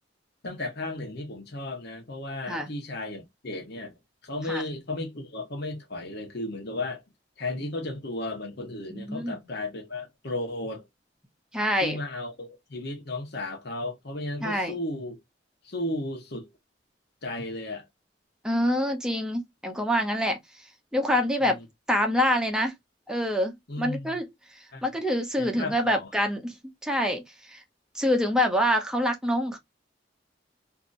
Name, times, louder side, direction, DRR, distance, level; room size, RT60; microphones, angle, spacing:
voice 1, 0.4-3.9 4.2-7.0 7.4-10.8 11.8-15.2 15.6-16.5 17.2-17.8 21.4-21.6 23.7-24.1 24.7-24.8 25.4-26.1, left 2 dB, 60° left, 1.1 m, -34 dB
voice 2, 8.9-9.4 11.5-12.0 14.4-14.7 18.4-20.4 20.9-21.6 21.9-22.7 23.1-24.3 24.8-26.5 26.8-27.6 27.9-29.6, equal, 5° right, 0.7 m, -26 dB
2.8 x 2.6 x 2.5 m
head